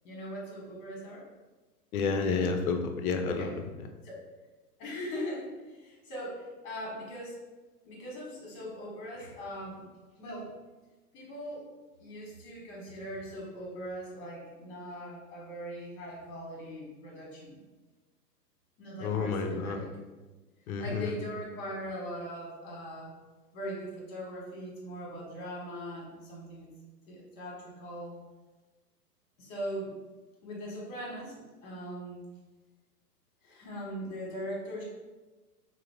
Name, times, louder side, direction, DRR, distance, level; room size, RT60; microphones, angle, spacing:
voice 1, 0.0-1.3 3.3-3.6 4.0-4.2 4.8-7.4 7.8-9.8 10.2-10.5 11.1-11.7 12.0-17.6 18.8-19.9 20.8-23.1 23.5-26.7 27.1-28.2 29.4-29.9 30.4-32.2 33.4-34.8, equal, 35° left, -3 dB, 1.3 m, -40 dB
voice 2, 1.9-3.5 19.0-19.8 20.7-21.1, left 5 dB, 60° left, 5 dB, 0.6 m, -30 dB
3.4 x 2.0 x 3.3 m, 1.2 s
hypercardioid pair, 120°, 49 cm